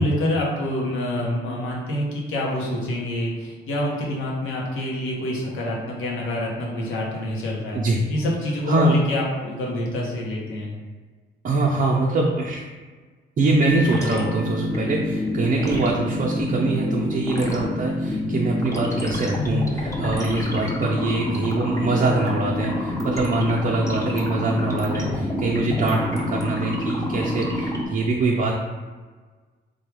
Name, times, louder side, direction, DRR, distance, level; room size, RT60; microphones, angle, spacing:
voice 1, 0.0-7.8 8.1-10.7, left 1 dB, 85° left, -2 dB, 0.9 m, -27 dB
voice 2, 8.7-9.0 11.4-12.7 13.4-28.5, right 2 dB, 45° right, -3 dB, 0.5 m, -23 dB
sound 1, 13.6-15.1, left 2 dB, 60° left, 0.4 m, -34 dB
sound 2, 13.7-27.8, left 1 dB, 15° left, 0.7 m, -27 dB
3.5 x 2.2 x 3.3 m, 1.4 s
cardioid pair, 90°, 20 cm